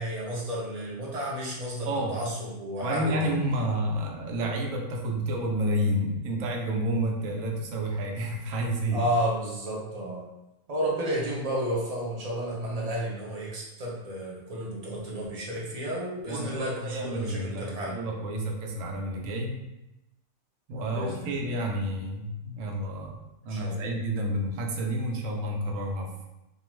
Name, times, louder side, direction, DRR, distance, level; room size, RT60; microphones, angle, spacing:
voice 1, 0.0-3.5 8.9-10.2 10.7-18.0 20.9-21.6 23.4-23.9, right 1 dB, 45° right, -5 dB, 0.5 m, -32 dB
voice 2, 1.8-2.3 2.8-9.0 16.3-19.6 20.7-23.2 23.4-26.2, right 1 dB, 85° right, 1 dB, 0.9 m, -30 dB
2.4 x 2.3 x 3.1 m, 0.93 s
omnidirectional pair, 1.3 m